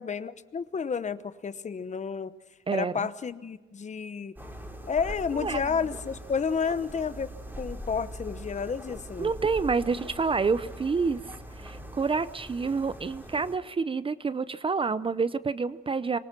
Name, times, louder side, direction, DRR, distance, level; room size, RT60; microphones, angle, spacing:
voice 1, 0.0-2.3 2.7-4.3 4.8-7.3 7.6-9.3, left 6 dB, 35° left, 14 dB, 1.0 m, -31 dB
voice 2, 2.7-3.1 5.3-5.6 9.2-16.2, right 4 dB, 25° right, 15 dB, 0.6 m, -28 dB
sound 1, 4.4-13.6, equal, 10° right, 3.6 m, -42 dB
25.5 x 18.5 x 6.0 m, 1.1 s
cardioid pair, 90°, 20 cm